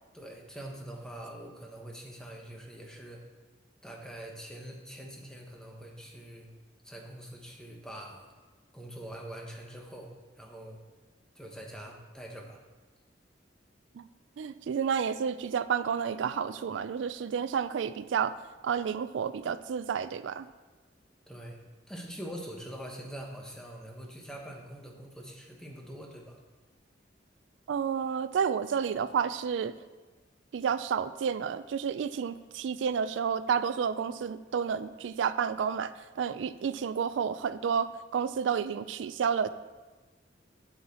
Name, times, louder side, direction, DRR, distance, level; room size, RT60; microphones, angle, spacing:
voice 1, 0.1-3.2 3.8-6.5 6.8-8.3 8.7-10.8 11.3-12.6 21.3-21.6 21.9-26.4, right 1 dB, 5° left, 0 dB, 1.1 m, -44 dB
voice 2, 14.4-18.3 18.6-20.5 27.7-29.7 30.5-39.5, right 7 dB, 90° right, 14 dB, 0.3 m, -30 dB
7.6 x 7.2 x 4.2 m, 1.3 s
head